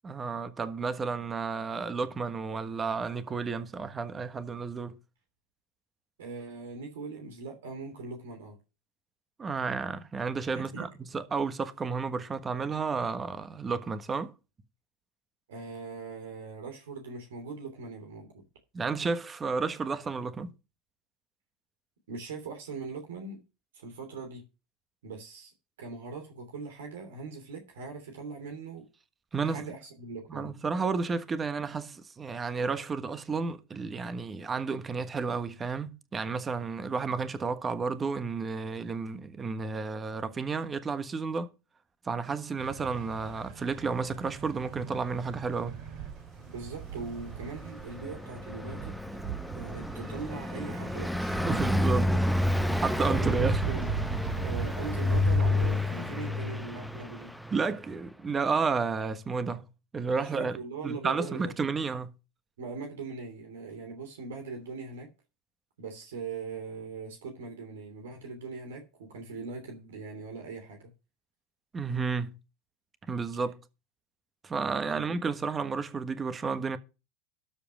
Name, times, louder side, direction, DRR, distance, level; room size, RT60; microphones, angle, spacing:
voice 1, 0.0-4.9 9.4-10.9 11.1-14.3 18.7-20.5 29.3-29.6 30.3-41.5 42.0-45.8 51.4-52.1 52.6-53.6 57.5-59.6 59.9-60.6 60.8-62.1 71.7-72.3 73.1-73.6 74.4-76.8, right 4 dB, 25° right, 1.3 m, -31 dB
voice 2, 6.2-8.6 10.5-10.9 15.5-18.4 22.1-23.4 23.7-24.4 25.0-25.5 25.8-28.8 29.4-30.5 46.5-49.1 49.5-51.7 52.0-52.1 53.1-53.9 54.4-57.3 60.1-61.5 62.6-65.1 65.8-70.9 75.1-75.2, right 4 dB, 80° right, 3.0 m, -41 dB
sound 1, 42.6-56.1, right 9 dB, 60° right, 5.1 m, -39 dB
Car passing by, 46.9-57.9, left 2 dB, ahead, 0.8 m, -30 dB
12.5 x 5.1 x 6.2 m
hypercardioid pair, 95°, 0 cm